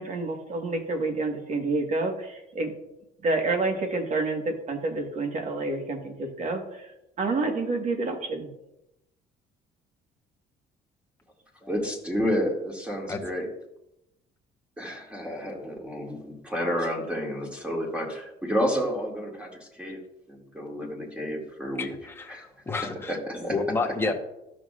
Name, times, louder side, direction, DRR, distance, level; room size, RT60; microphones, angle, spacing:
voice 1, 0.0-2.7 3.2-6.6 7.2-8.5, right 3 dB, 45° right, 4 dB, 1.6 m, -28 dB
voice 2, 11.6-13.5 14.8-20.0 20.3-21.9 22.3-22.4 23.1-23.6, equal, 5° right, -1 dB, 2.2 m, -30 dB
voice 3, 21.8-23.2 23.5-24.1, left 3 dB, 15° left, 2 dB, 1.1 m, -30 dB
14.0 x 6.2 x 2.5 m, 0.88 s
cardioid pair, 110°, 17 cm